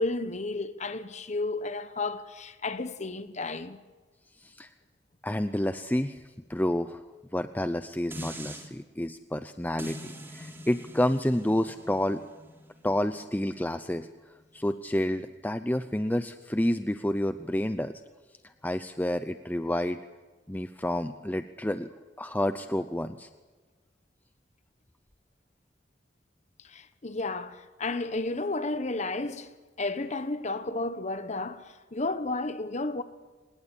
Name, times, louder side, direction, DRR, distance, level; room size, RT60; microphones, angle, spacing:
voice 1, 0.0-3.8 26.6-33.0, left 2 dB, 40° left, 1.1 m, -32 dB
voice 2, 4.4-4.7 5.2-6.2 6.5-7.0 7.3-12.2 12.8-17.9 18.6-20.0 20.5-21.9 22.2-23.3, left 1 dB, 10° left, 0.7 m, -29 dB
sound 1, 8.1-8.7 9.8-14.9 15.4-15.5, equal, 15° right, 3.6 m, -45 dB
25.0 x 20.5 x 8.4 m
head